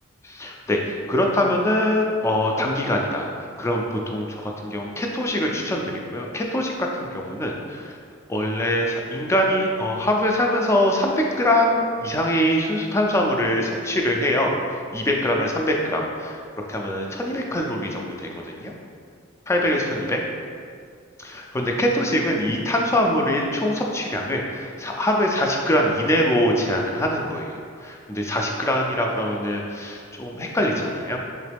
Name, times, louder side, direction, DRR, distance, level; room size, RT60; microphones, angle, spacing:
voice 1, 0.2-3.3 3.6-8.0 8.3-14.5 14.9-18.7 19.5-20.2 21.2-31.2, left 1 dB, 15° left, 0 dB, 0.3 m, -23 dB
3.1 x 2.9 x 3.3 m, 2.2 s
head